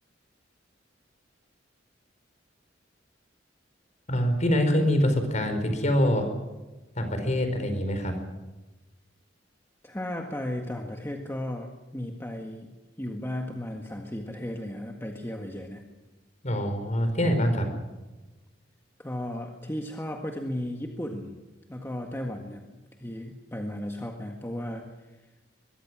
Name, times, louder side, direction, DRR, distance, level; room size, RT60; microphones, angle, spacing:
voice 1, 4.1-6.3 7.0-8.2 16.4-17.7, equal, 40° left, 7 dB, 4.8 m, -24 dB
voice 2, 9.8-12.7 13.0-15.8 19.0-21.4 21.7-22.7 23.0-24.9, left 1 dB, 15° left, 2 dB, 1.7 m, -35 dB
23.0 x 22.0 x 6.2 m, 1.1 s
head